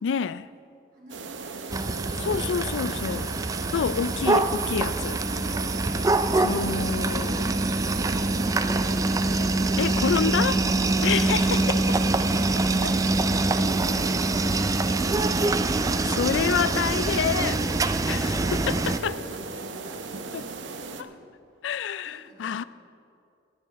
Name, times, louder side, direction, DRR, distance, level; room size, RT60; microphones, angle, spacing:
voice 1, 0.0-0.5 2.3-3.3 3.7-5.2 6.4-7.6 9.8-10.6 11.0-12.0 16.0-17.6 18.1-19.2 20.3-20.4 21.0-21.1 21.6-22.6, left 7 dB, 75° left, 0.4 m, -28 dB
voice 2, 0.9-3.2 3.5-3.8 5.0-5.6 12.7-13.0 16.3-17.3 17.9-21.1 22.0-22.5, equal, 50° right, 3.3 m, -47 dB
sound 1, 1.1-21.0, right 3 dB, 75° right, 0.7 m, -37 dB
sound 2, 1.7-19.0, right 2 dB, 20° right, 0.3 m, -25 dB
19.0 x 8.8 x 4.1 m
head